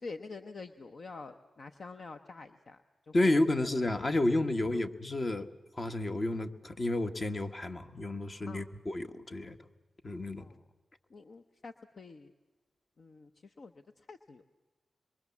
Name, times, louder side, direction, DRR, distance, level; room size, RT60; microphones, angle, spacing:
voice 1, 0.0-3.3 4.7-4.8 8.5-8.6 10.4-10.6 11.1-12.3 13.0-14.4, left 4 dB, 65° left, 8 dB, 0.9 m, -47 dB
voice 2, 3.1-5.5 5.8-9.6 10.0-10.4, left 2 dB, 45° left, 7 dB, 1.6 m, -31 dB
26.0 x 22.5 x 7.3 m, 1.3 s
cardioid pair, 45°, 0 cm